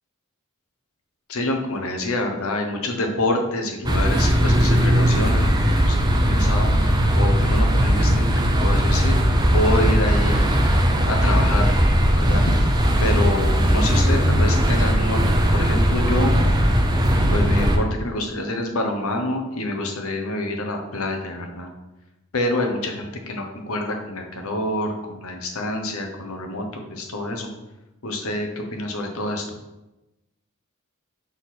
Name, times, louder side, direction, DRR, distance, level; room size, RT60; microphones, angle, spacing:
voice 1, 1.3-6.7 7.1-8.3 8.6-9.2 9.5-10.5 11.1-11.8 12.2-12.4 13.0-16.4 17.3-21.7 22.3-27.5 28.0-29.5, left 1 dB, 70° left, 3 dB, 1.0 m, -27 dB
sound 1, 3.8-17.8, equal, 20° right, 0.7 m, -18 dB
6.3 x 4.0 x 4.2 m, 0.99 s
head